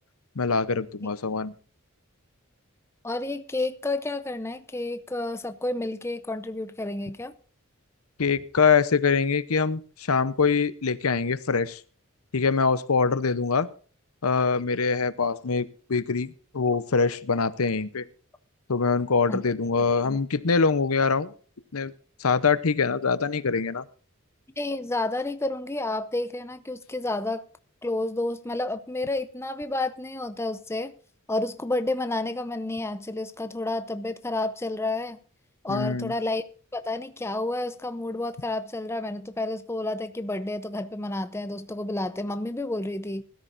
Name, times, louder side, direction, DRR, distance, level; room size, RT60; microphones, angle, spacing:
voice 1, 0.4-1.5 8.2-11.8 12.3-13.7 14.2-18.1 18.7-21.3 21.7-21.9 22.2-23.8 35.7-36.1, left 5 dB, 85° left, 0.8 m, -24 dB
voice 2, 3.0-7.3 19.3-19.4 20.0-20.2 24.6-27.4 27.8-30.9 31.3-35.2 35.6-36.5 36.7-43.2, left 2 dB, 10° left, 0.6 m, -30 dB
20.5 x 13.5 x 2.6 m
head